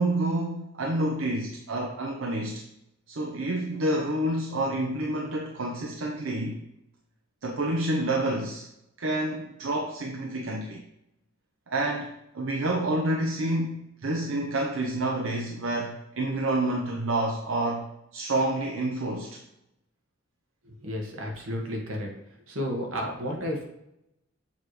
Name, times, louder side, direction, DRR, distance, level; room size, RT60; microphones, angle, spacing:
voice 1, 0.0-2.6 3.1-6.6 7.4-8.7 9.0-10.8 11.7-19.4, right 1 dB, 70° right, 0 dB, 0.7 m, -28 dB
voice 2, 20.6-22.1 22.5-23.6, equal, 85° right, 0 dB, 1.4 m, -32 dB
7.2 x 3.0 x 4.8 m, 0.83 s
head